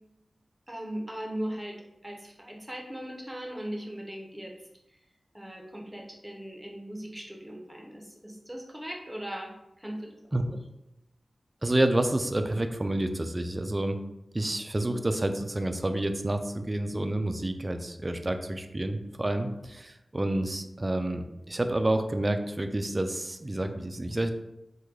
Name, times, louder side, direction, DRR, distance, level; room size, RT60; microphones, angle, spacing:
voice 1, 0.7-1.8 2.0-4.5 5.3-10.5, right 1 dB, 10° right, 0 dB, 0.7 m, -39 dB
voice 2, 11.6-14.0 14.3-24.3, right 1 dB, 30° right, 7 dB, 0.3 m, -29 dB
3.1 x 2.2 x 3.6 m, 0.89 s
cardioid pair, 45°, 0 cm